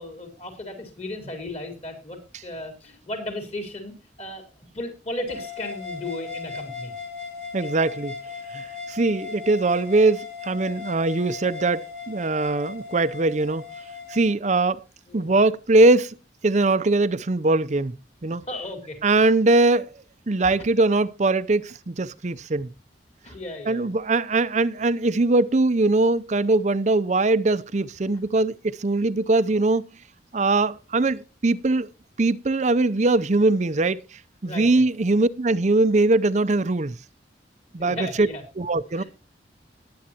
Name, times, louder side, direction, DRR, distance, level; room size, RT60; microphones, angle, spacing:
voice 1, 0.0-3.9 4.2-4.4 4.7-6.9 15.0-15.3 18.4-19.0 20.4-20.6 23.2-23.9 34.5-34.8 37.8-38.4 39.0-39.1, left 1 dB, 35° left, 4.0 m, -35 dB
sound 1, 5.3-14.3, left 5 dB, 70° left, 3.7 m, -37 dB
voice 2, 7.5-8.2 8.5-13.6 14.1-14.8 15.1-16.1 16.4-17.9 18.2-18.4 19.0-19.9 20.3-22.7 23.7-29.8 30.3-31.9 32.2-37.0 37.7-38.3 38.6-39.0, right 2 dB, 40° right, 0.6 m, -21 dB
20.0 x 8.7 x 2.9 m
head